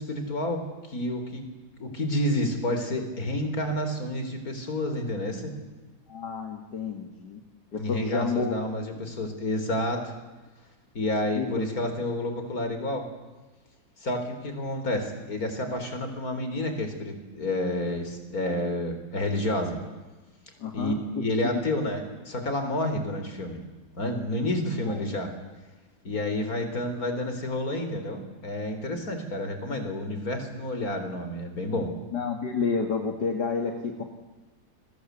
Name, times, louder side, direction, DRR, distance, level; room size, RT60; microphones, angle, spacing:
voice 1, 0.0-1.4 1.8-5.5 7.8-10.1 10.9-13.0 14.0-19.8 20.7-23.6 24.0-25.3 26.0-31.9, left 1 dB, 60° left, 7 dB, 4.6 m, -29 dB
voice 2, 6.1-7.4 7.7-8.5 11.4-11.7 20.6-21.0 21.4-21.6 24.8-25.0 29.7-29.8 32.1-34.0, left 5 dB, 80° left, 4 dB, 2.7 m, -30 dB
30.0 x 23.0 x 8.3 m, 1.2 s
omnidirectional pair, 1.8 m